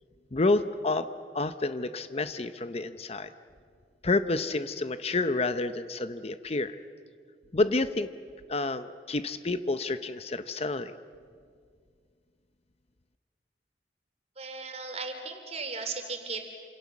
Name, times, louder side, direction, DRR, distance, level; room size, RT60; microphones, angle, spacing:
voice 1, 0.3-1.1 1.3-3.3 4.0-6.7 7.5-8.1 8.5-11.0, left 2 dB, 35° left, 11 dB, 0.8 m, -29 dB
voice 2, 14.4-16.4, right 4 dB, 40° right, 5 dB, 3.6 m, -36 dB
28.0 x 27.0 x 7.3 m, 2.1 s
head